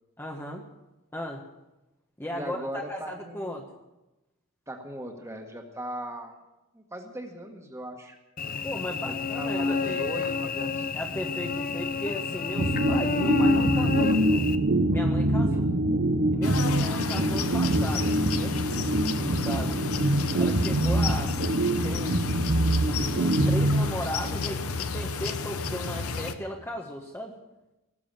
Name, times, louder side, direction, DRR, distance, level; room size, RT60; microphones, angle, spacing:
voice 1, 0.2-0.6 1.1-1.4 2.2-2.6 2.9-3.6 8.6-10.1 10.9-14.5 14.9-15.7 16.3-18.6 19.2-19.7 20.3-21.4 21.8-22.4 22.9-27.4, equal, 10° left, 0 dB, 1.3 m, -36 dB
voice 2, 2.3-3.6 4.7-6.4 6.7-8.2 9.0-10.9 15.5-15.8 19.6-19.9, right 1 dB, 15° right, 3 dB, 1.7 m, -39 dB
Cricket / Buzz, 8.4-14.6, left 4 dB, 40° left, 0.7 m, -28 dB
sound 1, 12.6-24.4, right 1 dB, 55° right, 1.0 m, -25 dB
sound 2, 16.4-26.3, left 4 dB, 85° left, 1.0 m, -32 dB
19.0 x 7.4 x 8.8 m, 0.99 s
head